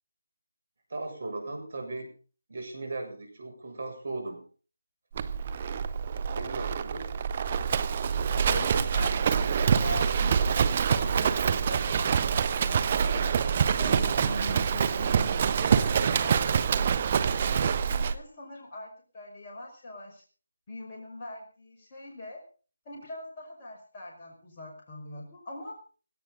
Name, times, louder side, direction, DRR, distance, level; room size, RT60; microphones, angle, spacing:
voice 1, 0.9-2.1 2.5-4.4 6.3-7.1, right 2 dB, 50° right, 4 dB, 6.9 m, -37 dB
Livestock farm animals working animals, 5.1-18.2, right 7 dB, 35° right, 0.9 m, -26 dB
voice 2, 8.5-13.3 13.8-16.5 17.1-20.2 20.7-22.4 22.9-25.8, left 1 dB, 25° left, -2 dB, 5.4 m, -42 dB
17.5 x 17.5 x 4.0 m, 0.39 s
figure-of-eight pair, 155°, 0 cm